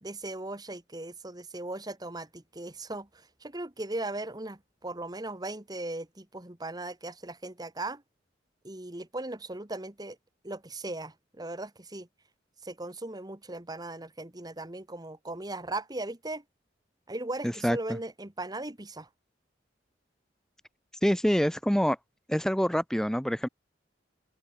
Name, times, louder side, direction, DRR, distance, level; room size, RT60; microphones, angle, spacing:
voice 1, 0.0-8.0 8.6-10.2 10.4-12.1 12.6-16.4 17.1-19.1, right 2 dB, 20° right, 1.7 m, -38 dB
voice 2, 21.0-22.0 22.3-23.5, equal, 5° left, 1.2 m, -25 dB
open air
head